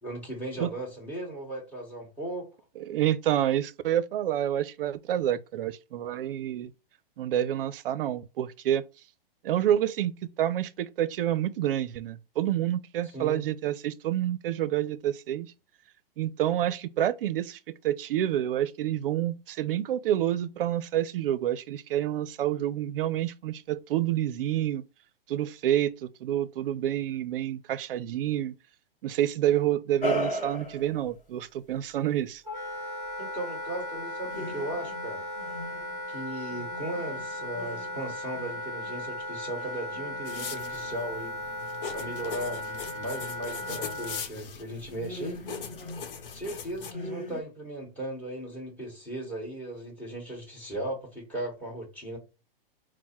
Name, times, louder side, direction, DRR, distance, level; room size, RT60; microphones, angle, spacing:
voice 1, 0.0-2.5 13.0-13.4 33.2-35.2 36.1-41.4 41.9-45.6 46.3-52.2, right 1 dB, 5° left, 1.5 m, -37 dB
voice 2, 2.9-6.7 7.2-8.8 9.4-10.1 10.4-15.5 16.2-24.8 25.3-28.5 29.0-32.4, right 11 dB, 65° right, 0.5 m, -28 dB
sound 1, 30.0-31.1 34.3-36.1 36.5-46.5 46.9-47.4, equal, 25° left, 0.9 m, -39 dB
Wind instrument woodwind instrument, 32.4-44.3, left 1 dB, 10° right, 1.3 m, -37 dB
sound 2, 40.2-46.9, left 6 dB, 65° left, 0.9 m, -41 dB
4.4 x 2.1 x 4.4 m
hypercardioid pair, 135°, 29 cm